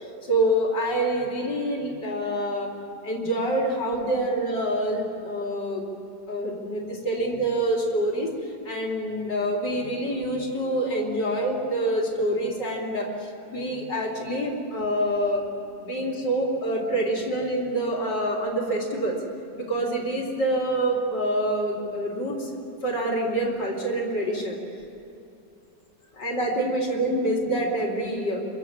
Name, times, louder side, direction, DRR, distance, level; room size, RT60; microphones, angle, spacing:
voice 1, 0.3-2.7 3.0-5.8 6.3-8.3 8.7-13.1 13.5-15.5 15.8-19.2 19.6-22.5 22.8-24.6 26.2-28.4, right 1 dB, 90° left, -1 dB, 4.4 m, -26 dB
26.5 x 24.0 x 7.6 m, 2.7 s
omnidirectional pair, 1.8 m